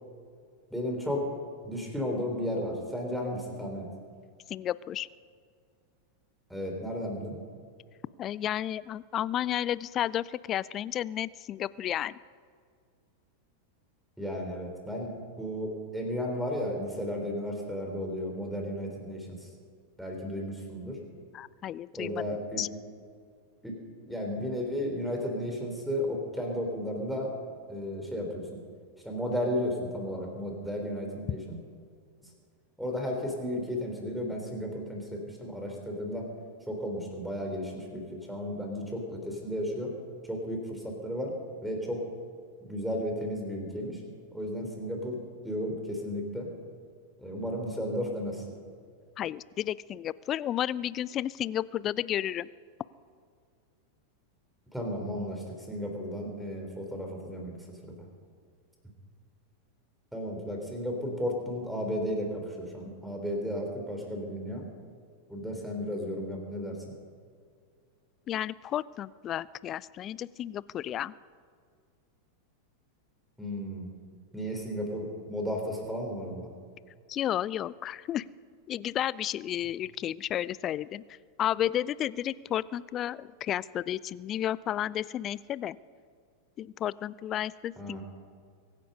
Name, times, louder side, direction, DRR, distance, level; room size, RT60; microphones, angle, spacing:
voice 1, 0.7-1.2 1.6-3.9 6.5-7.4 14.2-15.1 15.4-19.4 20.0-21.0 21.9-22.6 23.6-23.7 24.1-27.3 27.7-28.6 29.0-31.6 32.8-36.3 36.7-39.9 40.3-41.3 41.6-42.0 42.6-44.0 44.3-45.2 45.4-46.5 47.2-48.4 54.7-57.5 57.8-58.0 60.1-64.7 65.3-66.8 73.4-73.9 74.3-76.5 87.8-88.0, equal, ahead, 1 dB, 3.6 m, -34 dB
voice 2, 4.5-5.1 8.2-12.2 21.3-22.2 22.6-22.7 49.2-52.5 68.3-71.1 77.1-78.2 78.7-81.0 81.4-85.8 86.6-88.0, left 11 dB, 30° left, 21 dB, 0.3 m, -32 dB
23.5 x 9.7 x 5.4 m, 2.1 s
figure-of-eight pair, 90°, 0 cm